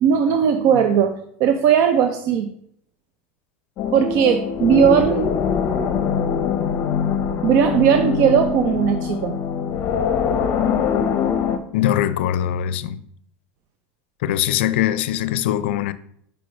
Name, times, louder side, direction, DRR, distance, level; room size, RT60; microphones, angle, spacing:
voice 1, 0.0-1.1 1.4-2.5 3.9-5.3 7.4-9.4, right 8 dB, 50° right, 0.5 m, -17 dB
sound 1, 3.8-11.6, left 7 dB, 45° left, 0.7 m, -23 dB
voice 2, 11.7-13.0 14.2-15.9, left 11 dB, 80° left, 0.4 m, -21 dB
4.7 x 4.6 x 5.1 m
supercardioid pair, 140°, 6 cm